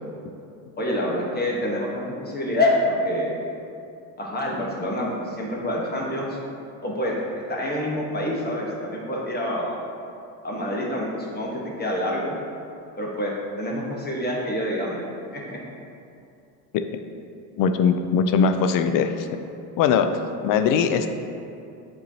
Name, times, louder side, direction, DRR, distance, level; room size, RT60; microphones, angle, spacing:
voice 1, 0.8-3.3 4.2-6.4 6.8-7.2 7.5-9.8 10.4-12.4 13.0-15.0 15.3-15.6, left 1 dB, 20° left, -3 dB, 1.3 m, -27 dB
voice 2, 17.6-19.3 19.8-20.1 20.4-21.1, left 6 dB, 45° left, 8 dB, 0.5 m, -20 dB
7.6 x 4.5 x 2.8 m, 2.6 s
supercardioid pair, 95°, 46 cm